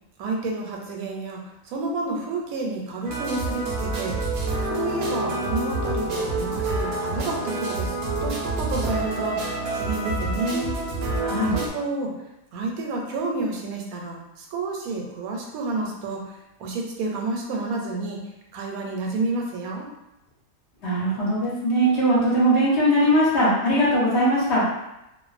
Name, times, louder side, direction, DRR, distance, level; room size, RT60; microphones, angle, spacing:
voice 1, 0.2-4.2 4.6-10.8 11.5-12.1 12.5-18.2 18.5-19.9, right 3 dB, 90° right, 0 dB, 1.0 m, -30 dB
sound 1, 3.0-11.7, right 2 dB, 60° right, 0.7 m, -27 dB
voice 2, 11.2-11.5 20.8-24.6, equal, 60° left, -7 dB, 1.0 m, -20 dB
2.5 x 2.1 x 2.4 m, 0.91 s
omnidirectional pair, 1.5 m